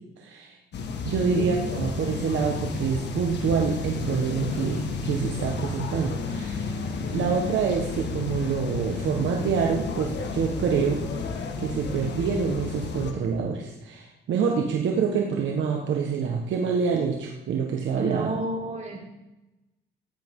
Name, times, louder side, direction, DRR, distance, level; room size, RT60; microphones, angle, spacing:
voice 1, 0.2-0.6 1.0-6.7 7.1-11.0 11.6-18.3, right 6 dB, 70° right, 1 dB, 1.5 m, -26 dB
sound 1, 0.7-13.1, left 4 dB, 60° left, 1.8 m, -32 dB
voice 2, 1.4-1.7 17.9-19.0, right 2 dB, 35° right, -4 dB, 5.5 m, -31 dB
15.5 x 10.5 x 3.8 m, 0.98 s
cardioid pair, 90°, 20 cm